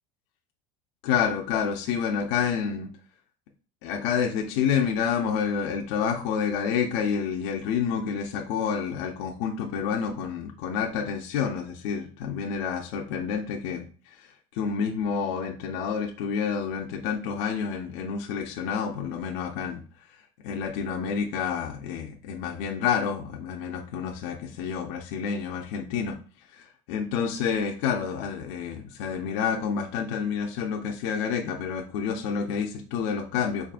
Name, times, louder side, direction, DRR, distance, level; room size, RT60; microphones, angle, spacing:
voice 1, 1.0-2.9 3.8-14.3 14.5-19.8 20.4-26.2 26.5-33.7, left 7 dB, 55° left, 2 dB, 0.4 m, -29 dB
3.9 x 3.5 x 2.4 m, 0.40 s
cardioid pair, 175°, 17 cm